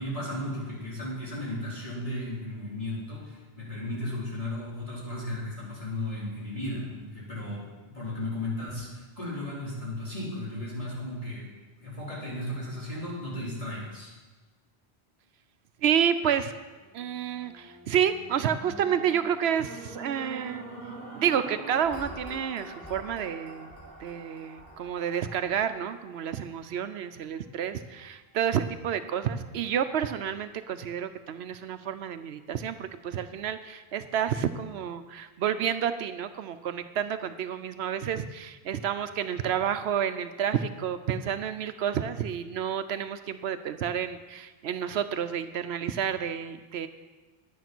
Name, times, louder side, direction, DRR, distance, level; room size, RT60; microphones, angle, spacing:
voice 1, 0.0-11.5 11.8-14.1, left 1 dB, 35° left, -6 dB, 3.8 m, -35 dB
voice 2, 15.8-16.5 16.9-20.6 21.2-23.7 24.0-46.9, right 8 dB, 75° right, 11 dB, 0.8 m, -30 dB
sound 1, 16.8-27.1 27.7-27.8, right 2 dB, 15° right, 2.9 m, -45 dB
10.0 x 9.3 x 6.0 m, 1.3 s
omnidirectional pair, 1.1 m